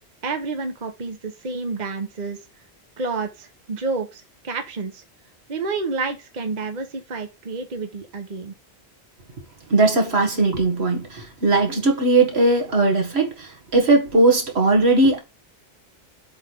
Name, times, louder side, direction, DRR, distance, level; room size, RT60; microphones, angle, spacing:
voice 1, 0.2-2.4 3.0-5.0 5.5-8.5, right 4 dB, 45° right, 1.1 m, -29 dB
voice 2, 9.7-15.2, right 2 dB, 75° right, 1.9 m, -19 dB
7.9 x 3.2 x 5.3 m
omnidirectional pair, 1.1 m